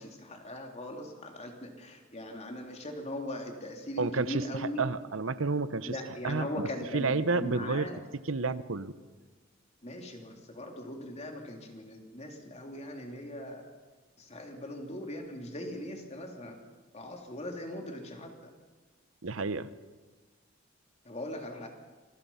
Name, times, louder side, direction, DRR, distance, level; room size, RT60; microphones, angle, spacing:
voice 1, 0.0-4.8 5.9-8.0 9.8-13.7 14.2-16.6 16.9-18.5 21.0-21.7, left 1 dB, 35° left, 2 dB, 3.3 m, -40 dB
voice 2, 4.0-4.4 4.8-5.9 6.2-6.5 6.9-7.9 8.3-8.9 19.2-19.7, right 3 dB, 85° right, 14 dB, 0.9 m, -30 dB
27.5 x 22.5 x 5.7 m, 1.3 s
head